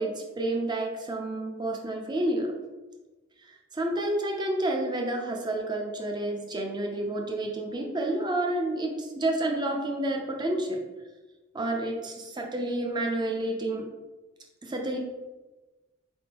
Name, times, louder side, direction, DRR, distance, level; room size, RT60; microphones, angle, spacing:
voice 1, 0.0-2.5 3.7-10.8 11.5-13.9 14.6-15.0, right 1 dB, 20° right, 1 dB, 0.5 m, -29 dB
4.3 x 3.5 x 2.9 m, 1.2 s
head